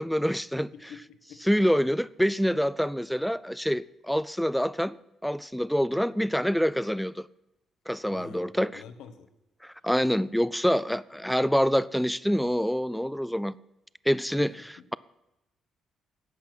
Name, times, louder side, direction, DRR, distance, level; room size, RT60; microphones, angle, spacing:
voice 1, 0.0-0.7 1.4-5.0 5.2-7.3 7.9-8.8 9.6-13.5 14.1-14.5, equal, ahead, 0.3 m, -26 dB
voice 2, 0.7-1.4 8.1-9.3 14.4-14.8, left 7 dB, 85° left, 1.2 m, -46 dB
11.5 x 8.4 x 6.0 m
cardioid pair, 90°, 0 cm